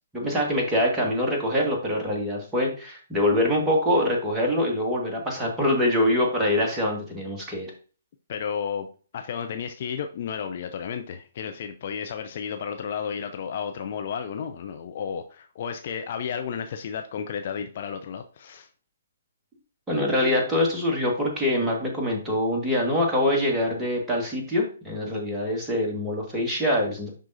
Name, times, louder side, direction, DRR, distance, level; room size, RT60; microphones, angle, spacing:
voice 1, 0.1-7.7 19.9-27.1, left 1 dB, 5° right, -2 dB, 1.7 m, -24 dB
voice 2, 8.3-8.9 9.1-18.7, left 7 dB, 40° left, 6 dB, 0.5 m, -32 dB
10.5 x 3.7 x 2.7 m, 0.39 s
figure-of-eight pair, 130°, 0 cm